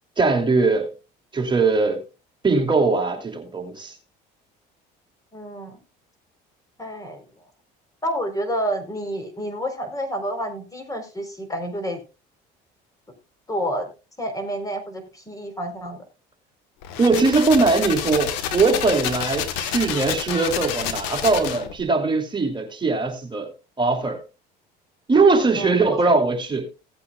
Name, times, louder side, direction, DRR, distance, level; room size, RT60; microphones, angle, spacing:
voice 1, 0.2-0.9 1.3-2.0 2.4-3.9 17.0-23.5 23.8-24.2 25.1-26.7, right 3 dB, 20° right, 3.1 m, -20 dB
voice 2, 5.3-5.8 6.8-7.2 8.0-12.0 13.5-13.9 14.2-16.0 25.6-26.1, equal, 15° left, 4.1 m, -29 dB
sound 1, 16.8-21.8, left 9 dB, 85° left, 1.4 m, -29 dB
17.5 x 8.4 x 2.4 m
supercardioid pair, 85°, 20 cm